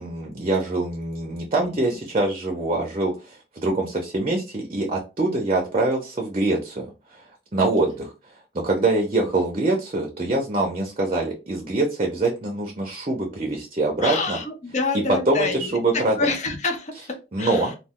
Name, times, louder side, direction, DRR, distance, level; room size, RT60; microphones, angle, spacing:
voice 1, 0.0-6.9 7.1-7.2 7.5-8.1 8.6-14.4 15.1-16.2 17.3-17.7, right 2 dB, 35° right, 1 dB, 0.5 m, -24 dB
voice 2, 14.0-17.8, left 3 dB, 40° left, 5 dB, 0.6 m, -27 dB
2.3 x 2.2 x 3.5 m, 0.29 s
head